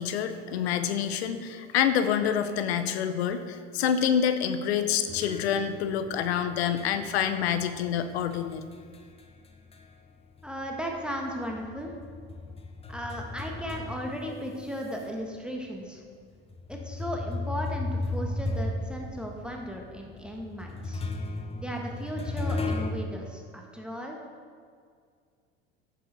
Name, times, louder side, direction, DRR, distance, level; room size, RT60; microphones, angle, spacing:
voice 1, 0.0-8.6, left 8 dB, 85° left, 10 dB, 0.7 m, -27 dB
sound 1, 5.1-10.1 10.4-15.0 15.6-15.7 16.5-22.9, left 2 dB, 20° left, 0.8 m, -35 dB
voice 2, 10.4-11.9 12.9-16.0 16.7-21.0 21.5-24.2, equal, 5° right, 0 dB, 1.3 m, -36 dB
9.2 x 6.7 x 4.0 m, 2.1 s
hypercardioid pair, 90°, 31 cm